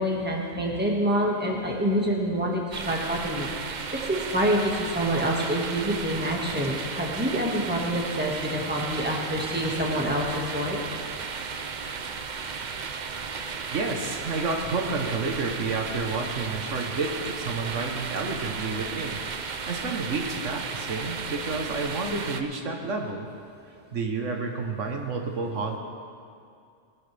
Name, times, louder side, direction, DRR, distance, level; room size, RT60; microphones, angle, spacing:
voice 1, 0.0-3.8 4.1-10.8, equal, 10° right, -2 dB, 1.8 m, -27 dB
sound 1, 2.7-22.4, right 5 dB, 45° right, 0.7 m, -34 dB
voice 2, 13.7-19.2 19.5-23.3 23.9-25.8, right 3 dB, 80° right, 3 dB, 1.5 m, -30 dB
20.0 x 11.5 x 3.4 m, 2.4 s
omnidirectional pair, 1.2 m